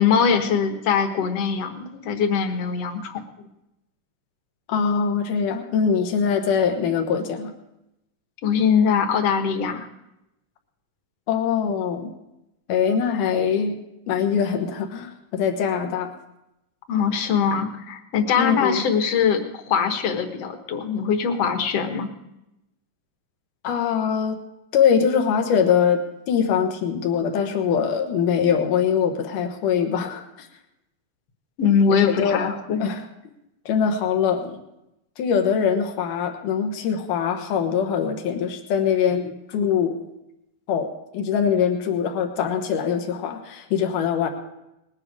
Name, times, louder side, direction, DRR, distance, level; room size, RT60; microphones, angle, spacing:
voice 1, 0.0-3.5 8.4-9.9 16.9-22.1 31.6-32.8, left 6 dB, 55° left, 6 dB, 2.1 m, -22 dB
voice 2, 4.7-7.5 11.3-12.1 12.7-13.8 14.1-16.1 18.4-18.8 23.6-24.4 24.7-26.0 26.3-30.5 31.9-32.5 32.8-33.0 33.7-34.6 35.2-40.0 40.7-40.9 41.1-44.3, left 7 dB, 85° left, 5 dB, 2.8 m, -22 dB
20.0 x 9.9 x 4.8 m, 0.89 s
omnidirectional pair, 3.6 m